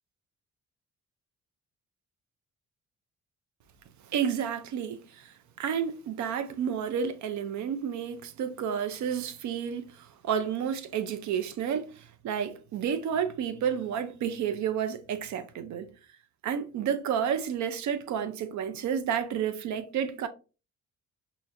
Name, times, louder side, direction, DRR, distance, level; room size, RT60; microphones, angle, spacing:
voice 1, 4.1-15.9 16.4-20.3, right 8 dB, 70° right, 0.6 m, -31 dB
4.2 x 2.8 x 2.4 m
cardioid pair, 90°, 30 cm